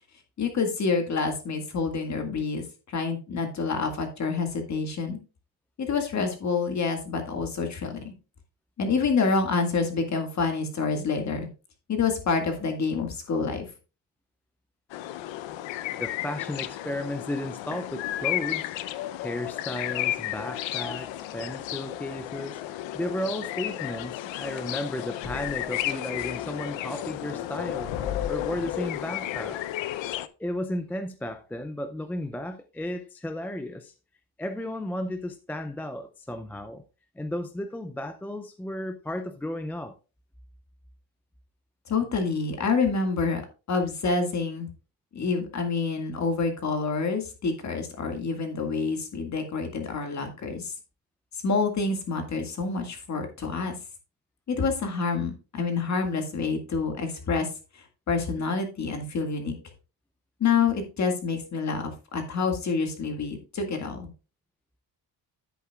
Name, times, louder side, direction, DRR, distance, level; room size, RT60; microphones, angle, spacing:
voice 1, 0.4-5.2 5.8-8.1 8.8-11.5 11.9-13.7 41.9-43.4 43.7-44.7 45.1-50.7 51.4-53.8 54.5-57.5 57.7-59.5 60.4-64.1, left 4 dB, 35° left, 1.9 m, -27 dB
sound 1, 14.9-30.3, left 14 dB, 75° left, 0.7 m, -33 dB
voice 2, 15.9-18.8 19.2-27.9 28.3-29.6 30.4-33.9 34.4-36.8 37.2-40.0, left 1 dB, 5° left, 0.3 m, -34 dB
sound 2, 25.2-30.2, left 7 dB, 55° left, 1.1 m, -40 dB
10.5 x 8.2 x 2.3 m
cardioid pair, 155°, 46 cm